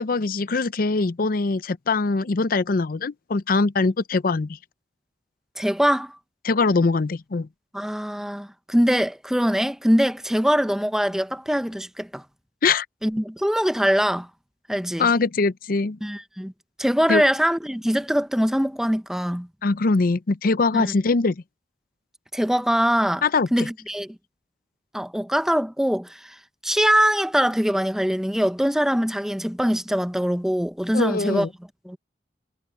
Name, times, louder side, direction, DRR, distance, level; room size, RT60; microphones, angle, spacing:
voice 1, 0.0-4.6 6.4-7.5 12.6-12.9 15.0-16.0 17.1-17.2 19.6-21.4 23.2-23.7 30.9-31.5, left 3 dB, 55° left, 0.6 m, -22 dB
voice 2, 5.6-6.2 7.7-12.2 13.0-14.3 14.7-15.1 16.0-16.5 16.8-19.5 20.7-20.9 22.3-23.2 23.5-24.2 24.9-26.3 26.6-31.5 31.9-32.0, equal, 5° right, 0.7 m, -23 dB
head